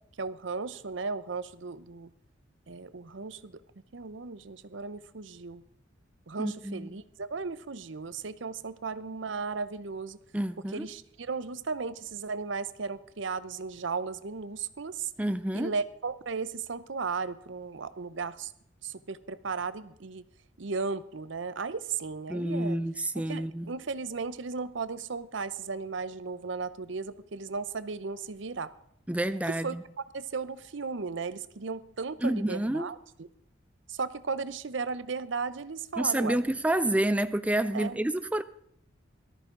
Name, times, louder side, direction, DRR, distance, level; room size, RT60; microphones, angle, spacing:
voice 1, 0.2-2.1 2.7-3.6 3.9-5.6 6.3-10.2 10.7-15.1 15.5-18.5 18.8-20.2 20.6-22.8 23.3-28.7 29.6-29.8 30.1-33.3 33.9-36.4 37.7-38.0, right 4 dB, 70° right, 0.7 m, -35 dB
voice 2, 6.4-6.9 10.3-10.9 15.2-15.7 22.3-23.7 29.1-29.8 32.2-32.9 36.0-38.4, right 1 dB, 5° right, 0.4 m, -29 dB
18.0 x 13.0 x 3.8 m
head